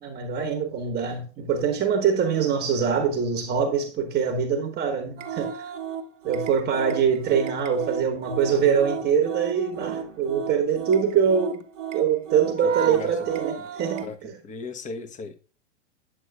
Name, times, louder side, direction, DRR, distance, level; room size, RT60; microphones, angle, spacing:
voice 1, 0.0-5.5 6.2-11.6 11.9-14.3, right 7 dB, 25° right, 1.1 m, -24 dB
sound 1, 5.2-14.2, right 8 dB, 75° right, 1.0 m, -34 dB
voice 2, 12.6-13.1 14.0-14.2 14.4-15.4, left 4 dB, 20° left, 0.9 m, -36 dB
7.8 x 7.8 x 2.3 m
hypercardioid pair, 100°, 37 cm